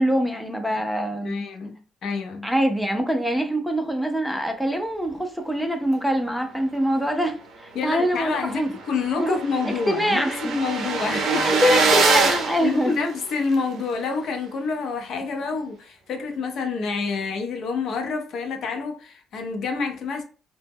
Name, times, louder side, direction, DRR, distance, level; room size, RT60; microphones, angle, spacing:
voice 1, 0.0-1.4 2.4-8.7 9.2-9.4 9.7-10.5 11.1-12.9, equal, ahead, 0.4 m, -24 dB
voice 2, 1.2-2.5 7.7-11.6 12.6-20.2, left 4 dB, 60° left, 0.5 m, -28 dB
sound 1, 8.0-8.1 8.4-8.5 8.7-13.5, right 4 dB, 70° right, 0.5 m, -24 dB
2.0 x 2.0 x 3.4 m
cardioid pair, 125°, 0 cm